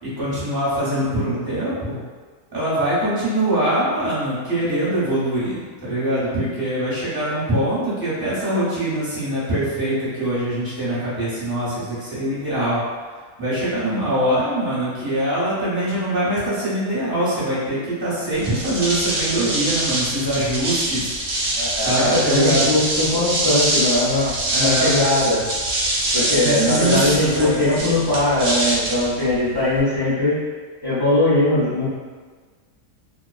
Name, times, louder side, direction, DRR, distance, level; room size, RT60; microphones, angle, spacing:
voice 1, 0.0-2.0 2.5-12.8 13.4-21.1 21.8-22.7 24.4-25.0 26.2-27.7, right 1 dB, 20° right, -11 dB, 0.7 m, -23 dB
sound 1, 18.3-29.8, right 1 dB, 60° right, 0.8 m, -24 dB
voice 2, 21.5-25.4 26.1-30.4 30.8-31.8, left 1 dB, 30° left, -12 dB, 0.4 m, -20 dB
2.4 x 2.1 x 2.4 m, 1.5 s
omnidirectional pair, 1.5 m